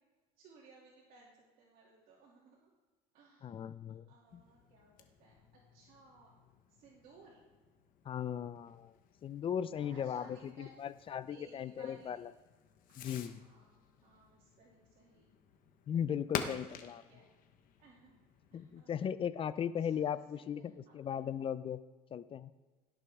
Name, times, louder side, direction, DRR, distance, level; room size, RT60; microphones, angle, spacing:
voice 1, 0.4-2.7 3.1-3.5 4.1-4.9 5.2-6.3 6.7-7.4 9.7-10.7 11.3-12.1 12.9-15.3 16.6-17.2 17.8-18.2 18.5-18.9 19.8-21.2, right 3 dB, 55° right, -5 dB, 2.7 m, -61 dB
voice 2, 3.4-4.1 4.3-4.4 8.1-8.9 9.2-12.3 13.0-13.4 15.9-17.0 18.5-21.8 22.1-22.5, left 8 dB, 30° left, 15 dB, 0.4 m, -37 dB
Fireworks, 4.3-18.9, left 8 dB, 50° left, 1.1 m, -50 dB
16.5 x 6.8 x 3.6 m, 1.3 s
supercardioid pair, 120°, 18 cm